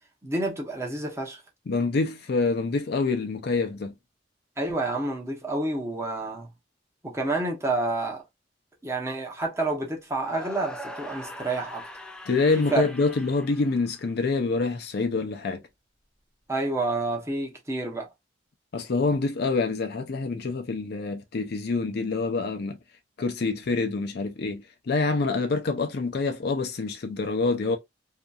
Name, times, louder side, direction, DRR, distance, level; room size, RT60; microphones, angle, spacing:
voice 1, 0.2-1.4 4.6-6.5 7.0-8.2 8.8-11.9 12.3-12.4 12.7-12.9 16.5-18.1, right 2 dB, 15° right, 0.8 m, -29 dB
voice 2, 1.7-3.9 12.3-15.6 18.7-22.8 23.2-27.8, left 3 dB, 60° left, 0.5 m, -26 dB
sound 1, 10.2-14.4, equal, 5° left, 0.4 m, -41 dB
2.7 x 2.4 x 2.3 m
head